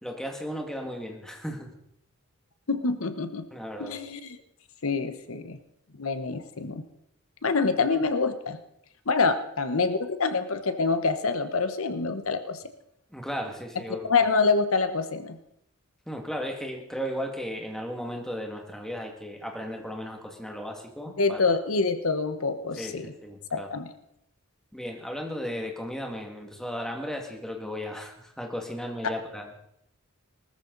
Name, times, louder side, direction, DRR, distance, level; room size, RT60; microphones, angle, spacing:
voice 1, 0.0-1.7 3.5-4.0 13.1-14.1 16.1-21.4 22.8-23.7 24.7-29.6, equal, 5° left, 2 dB, 2.1 m, -35 dB
voice 2, 2.7-3.4 3.8-4.3 4.8-5.6 6.0-6.8 7.4-8.6 9.1-12.6 14.1-15.4 21.2-23.1 23.5-23.9, left 4 dB, 70° left, 10 dB, 1.1 m, -26 dB
19.0 x 13.5 x 4.0 m, 0.77 s
head